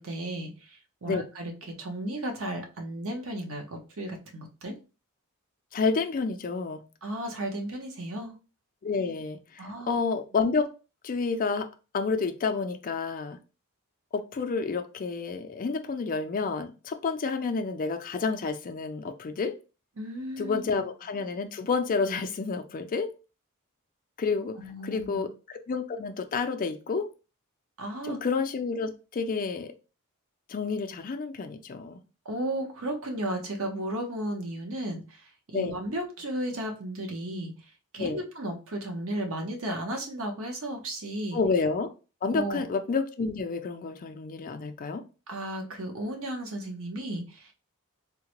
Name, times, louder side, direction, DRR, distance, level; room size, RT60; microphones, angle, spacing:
voice 1, 0.0-4.8 7.0-8.3 9.6-10.0 20.0-20.7 24.6-25.2 27.8-28.2 32.2-37.5 37.9-41.4 42.3-42.6 45.3-47.5, right 1 dB, 65° right, 3 dB, 0.8 m, -34 dB
voice 2, 5.7-6.8 8.8-10.7 11.0-11.7 11.9-13.4 14.1-19.5 20.4-23.1 24.2-24.6 24.8-27.1 28.0-29.7 30.5-32.0 35.5-35.8 38.0-38.2 41.3-41.9 42.2-45.0, left 4 dB, 40° left, 7 dB, 0.4 m, -29 dB
3.7 x 2.1 x 2.9 m, 0.32 s
head